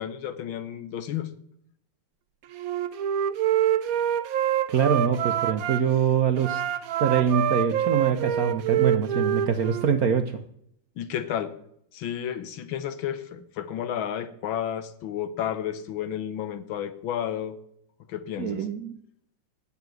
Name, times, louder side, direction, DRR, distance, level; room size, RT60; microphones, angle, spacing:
voice 1, 0.0-1.3 11.0-11.5 11.9-17.6 18.1-18.6, left 10 dB, 70° left, 12 dB, 1.6 m, -32 dB
Wind instrument woodwind instrument, 2.5-5.8 6.4-9.9, right 10 dB, 85° right, 0.7 m, -26 dB
voice 2, 4.7-6.6 7.0-10.4 18.4-18.9, right 7 dB, 65° right, 7 dB, 1.0 m, -24 dB
9.5 x 7.0 x 7.8 m, 0.72 s
omnidirectional pair, 2.3 m